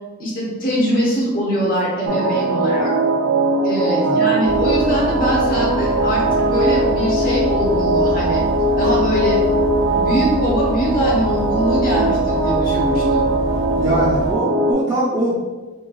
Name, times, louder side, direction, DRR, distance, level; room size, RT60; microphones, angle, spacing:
voice 1, 0.2-2.9 3.6-8.4 8.7-9.4 9.8-13.3, equal, 45° left, -4 dB, 1.0 m, -22 dB
sound 1, 2.1-14.7, right 2 dB, 85° right, 0.4 m, -19 dB
sound 2, 4.4-14.3, equal, 75° left, 1.1 m, -28 dB
voice 2, 13.8-15.4, equal, 20° right, -7 dB, 0.5 m, -21 dB
4.2 x 2.5 x 2.3 m, 1.2 s
head